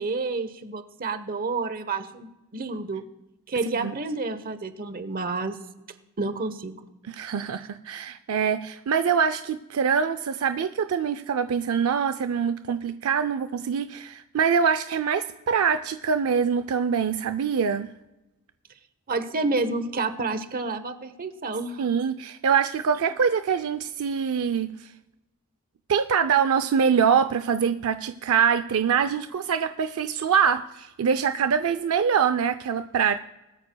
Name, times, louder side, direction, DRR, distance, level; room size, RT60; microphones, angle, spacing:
voice 1, 0.0-3.0 3.5-5.6 6.2-6.7 19.1-21.9, right 3 dB, 40° right, 10 dB, 0.9 m, -29 dB
voice 2, 7.1-17.9 21.8-24.9 25.9-33.2, right 7 dB, 70° right, 10 dB, 0.4 m, -24 dB
20.5 x 13.0 x 2.2 m, 0.99 s
head